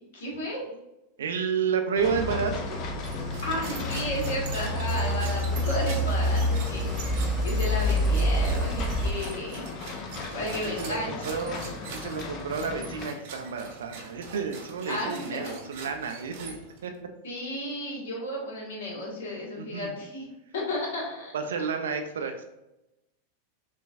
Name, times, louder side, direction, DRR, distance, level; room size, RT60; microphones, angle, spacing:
voice 1, 0.1-0.6 3.4-9.6 10.3-11.4 14.9-15.5 17.2-20.2 20.5-21.7, left 1 dB, 55° left, -2 dB, 1.2 m, -33 dB
voice 2, 1.2-2.5 10.6-16.6 16.8-16.9 19.6-19.9 21.3-22.4, right 6 dB, 65° right, 5 dB, 0.4 m, -31 dB
sound 1, 1.9-13.1, left 4 dB, 35° left, 0.6 m, -38 dB
sound 2, 2.1-9.1, equal, 10° left, 0.9 m, -28 dB
sound 3, 3.0-16.9, right 4 dB, 50° right, 0.8 m, -43 dB
5.7 x 2.3 x 2.4 m, 0.93 s
figure-of-eight pair, 90°, 0 cm